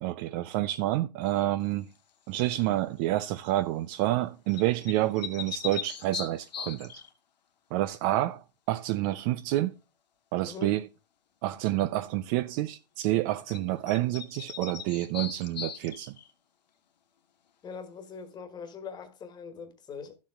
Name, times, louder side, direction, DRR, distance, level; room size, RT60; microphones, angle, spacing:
voice 1, 0.0-1.9 2.3-7.0 7.7-9.7 10.3-10.8 11.4-16.1, right 15 dB, 30° right, 0.4 m, -28 dB
sound 1, 2.3-2.7 4.5-7.1 13.5-13.6 13.9-16.3, left 8 dB, 80° left, 1.4 m, -39 dB
voice 2, 10.4-10.8 17.6-20.2, left 6 dB, 20° left, 1.6 m, -42 dB
12.0 x 7.3 x 3.6 m
hypercardioid pair, 130°, 21 cm